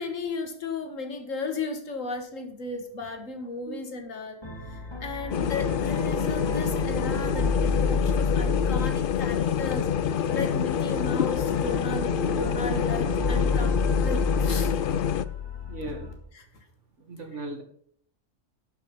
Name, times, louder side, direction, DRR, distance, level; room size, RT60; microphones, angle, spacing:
voice 1, 0.0-4.4 4.7-9.9 10.3-14.7 15.8-15.9 16.3-16.5, left 3 dB, 90° left, 6 dB, 1.9 m, -35 dB
sound 1, 4.4-16.1, left 2 dB, 20° left, 1.5 m, -31 dB
sound 2, 5.3-15.3, left 8 dB, 60° left, 0.6 m, -27 dB
voice 2, 15.7-16.1 17.0-17.6, right 2 dB, 70° right, 3 dB, 2.2 m, -37 dB
12.0 x 5.8 x 5.4 m, 0.63 s
omnidirectional pair, 1.3 m